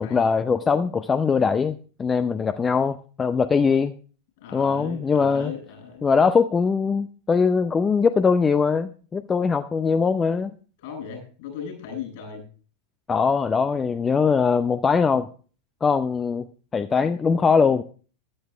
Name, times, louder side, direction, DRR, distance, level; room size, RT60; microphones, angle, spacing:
voice 1, 0.0-3.9 4.5-5.5 6.0-10.5 13.1-15.3 15.8-16.5 16.7-17.8, left 5 dB, 15° left, 12 dB, 0.5 m, -21 dB
voice 2, 4.4-6.1 10.8-12.4, left 7 dB, 50° left, 2 dB, 7.7 m, -37 dB
13.0 x 12.0 x 3.4 m, 0.40 s
figure-of-eight pair, 90°, 0 cm